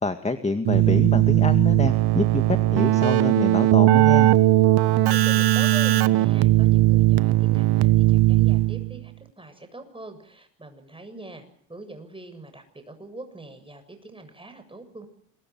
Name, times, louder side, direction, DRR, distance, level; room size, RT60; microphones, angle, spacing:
voice 1, 0.0-4.4, left 3 dB, 15° left, 8 dB, 2.1 m, -27 dB
Keyboard (musical), 0.7-9.0, right 16 dB, 55° right, 1.3 m, -18 dB
voice 2, 4.8-11.4 11.7-15.1, right 2 dB, 10° right, 8 dB, 7.3 m, -42 dB
26.5 x 22.5 x 6.2 m, 0.71 s
hypercardioid pair, 75°, 48 cm